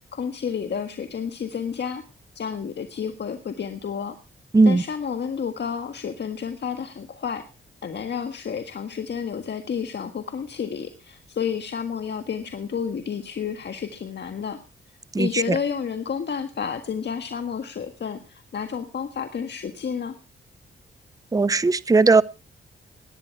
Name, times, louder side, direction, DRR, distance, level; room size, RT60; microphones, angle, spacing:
voice 1, 0.1-2.0 2.3-4.1 4.6-7.4 7.8-14.6 15.2-20.1, left 7 dB, 60° left, 1.6 m, -30 dB
voice 2, 15.1-15.6 21.3-22.2, right 3 dB, 15° right, 0.6 m, -18 dB
18.0 x 10.5 x 4.7 m
cardioid pair, 65°, 20 cm